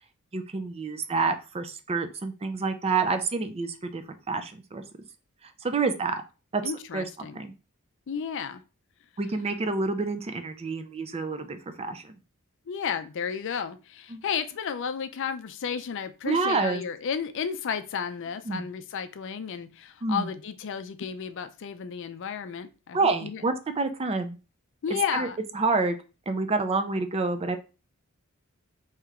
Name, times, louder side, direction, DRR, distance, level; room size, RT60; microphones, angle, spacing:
voice 1, 0.3-4.8 5.6-6.1 6.5-6.6 6.9-7.0 7.4-7.5 9.2-12.2 14.1-14.2 16.2-16.8 18.5-18.7 20.0-20.3 22.9-24.4 25.1-25.3 25.5-26.0 26.3-27.6, right 4 dB, 30° right, 8 dB, 0.4 m, -28 dB
voice 2, 6.6-7.4 8.1-8.6 12.7-23.4 24.8-25.4, left 7 dB, 60° left, 11 dB, 0.4 m, -33 dB
3.3 x 2.8 x 3.5 m, 0.31 s
head